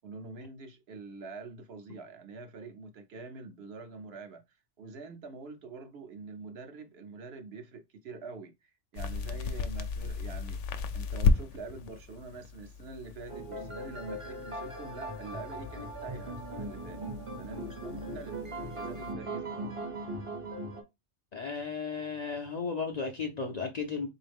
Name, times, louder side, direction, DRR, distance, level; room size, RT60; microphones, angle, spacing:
voice 1, 0.0-10.6 10.9-17.0 17.4-18.4 18.7-19.7, right 3 dB, 65° right, 1.0 m, -45 dB
sound 1, 8.9-19.1, left 4 dB, 85° left, 0.9 m, -35 dB
sound 2, 13.3-20.8, right 1 dB, 30° right, 0.7 m, -39 dB
voice 2, 21.3-24.1, left 5 dB, 50° left, 0.5 m, -34 dB
3.8 x 2.7 x 3.4 m
omnidirectional pair, 1.2 m